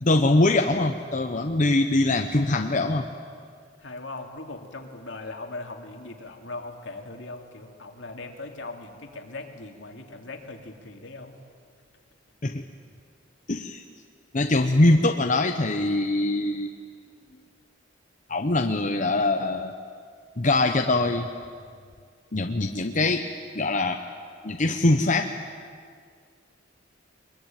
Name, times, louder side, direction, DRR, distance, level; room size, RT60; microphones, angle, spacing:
voice 1, 0.0-3.1 12.4-12.6 13.5-13.8 14.3-16.7 18.3-19.7 20.4-21.3 22.3-23.2 23.5-24.0 24.4-25.3, left 2 dB, 40° left, 4 dB, 0.9 m, -23 dB
voice 2, 3.8-11.4, left 2 dB, 70° left, 3 dB, 2.6 m, -39 dB
23.5 x 22.5 x 9.1 m, 2.1 s
head